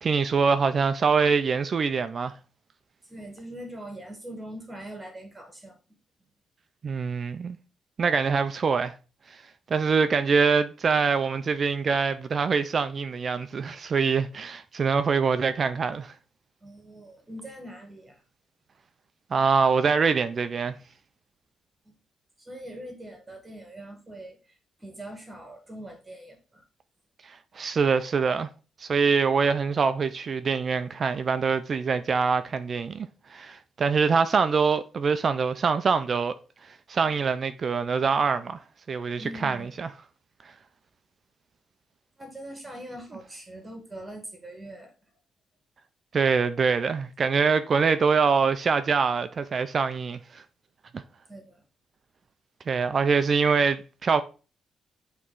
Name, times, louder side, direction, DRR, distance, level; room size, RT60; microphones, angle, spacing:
voice 1, 0.0-2.3 6.8-7.6 8.0-8.9 9.3-9.4 9.7-16.1 19.3-20.8 27.2-28.5 28.8-36.4 36.9-38.6 38.9-39.9 46.1-50.4 50.9-51.0 52.7-54.2, right 5 dB, 35° right, 0.4 m, -24 dB
voice 2, 3.1-6.0 16.6-18.2 21.8-21.9 22.4-26.6 39.2-39.7 42.2-44.9 51.3-51.6, right 1 dB, 15° right, 1.3 m, -42 dB
8.5 x 3.1 x 3.7 m
cardioid pair, 165°, 0 cm